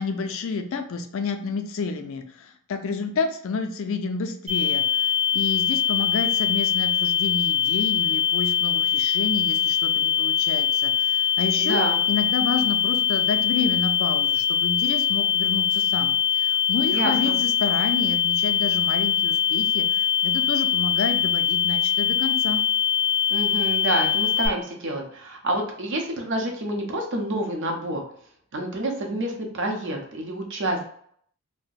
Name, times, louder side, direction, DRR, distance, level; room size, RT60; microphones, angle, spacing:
voice 1, 0.0-22.6, left 4 dB, 60° left, 6 dB, 0.4 m, -30 dB
sound 1, 4.5-24.5, left 9 dB, 35° right, 1.0 m, -22 dB
voice 2, 11.6-12.0 16.9-17.4 23.3-28.0 28.5-30.9, right 1 dB, 55° right, 2 dB, 0.7 m, -28 dB
2.6 x 2.1 x 3.9 m, 0.63 s
head